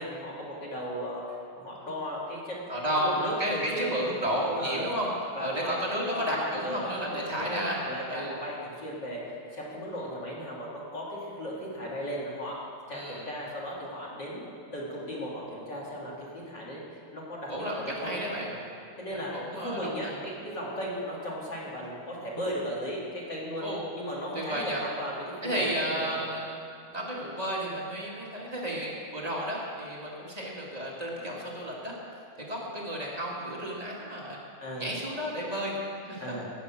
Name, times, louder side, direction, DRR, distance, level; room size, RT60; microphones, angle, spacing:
voice 1, 0.0-3.9 4.6-4.9 5.3-5.8 6.1-9.2 9.5-12.5 12.9-18.6 19.0-23.7 23.9-26.2 34.6-34.9 36.2-36.4, equal, 30° left, -6 dB, 3.1 m, -36 dB
voice 2, 2.7-5.1 5.4-7.8 8.1-8.3 12.9-13.3 17.5-18.5 19.1-20.1 23.6-23.8 24.3-24.8 25.4-26.6 26.9-32.0 32.5-34.4 34.8-35.8 36.0-36.2, equal, 20° right, -4 dB, 1.0 m, -32 dB
18.5 x 7.3 x 7.6 m, 2.4 s
omnidirectional pair, 4.4 m